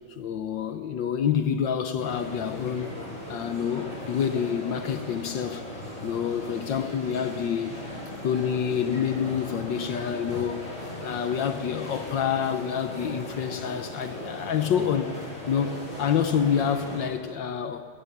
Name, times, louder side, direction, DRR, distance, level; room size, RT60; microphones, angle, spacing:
voice 1, 0.2-2.9 3.3-7.7 8.2-10.7 11.0-15.1 15.5-17.9, left 8 dB, 70° left, 8 dB, 1.5 m, -27 dB
sound 1, 2.0-17.0, left 1 dB, 15° left, 6.6 m, -38 dB
20.5 x 17.5 x 7.3 m, 2.1 s
omnidirectional pair, 2.2 m